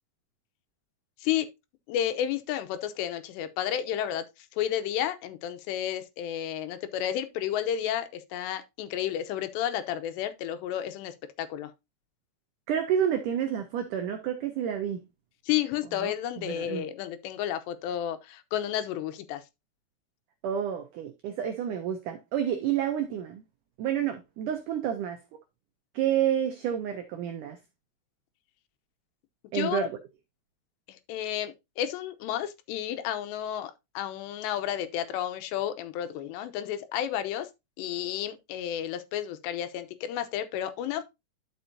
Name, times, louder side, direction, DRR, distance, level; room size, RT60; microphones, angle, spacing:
voice 1, 1.9-4.3 4.5-11.7 15.5-19.4 29.5-29.9 30.9-37.5 37.8-41.0, left 11 dB, 90° left, 3.0 m, -31 dB
voice 2, 12.7-15.0 16.0-16.9 20.4-23.4 23.8-25.2 25.9-27.6 29.5-29.9, right 9 dB, 90° right, 1.8 m, -29 dB
11.5 x 5.4 x 2.7 m
omnidirectional pair, 4.8 m